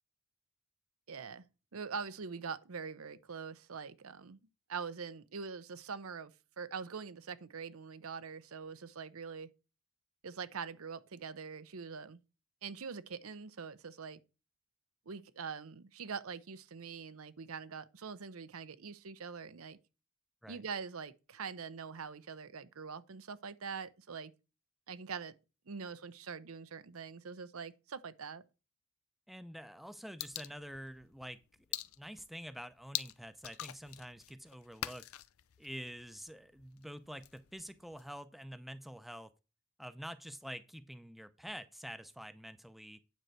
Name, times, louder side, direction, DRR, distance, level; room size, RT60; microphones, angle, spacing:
voice 1, 1.1-1.4 1.7-4.4 4.7-9.5 10.2-12.2 12.6-14.2 15.1-19.8 20.5-24.3 24.9-25.3 25.7-28.4, right 5 dB, 75° right, 0.7 m, -44 dB
voice 2, 29.3-31.4 32.0-35.1 35.6-39.3 39.8-43.0, equal, ahead, 0.5 m, -47 dB
sound 1, 30.2-38.2, left 13 dB, 85° left, 0.6 m, -45 dB
9.3 x 4.4 x 6.5 m
head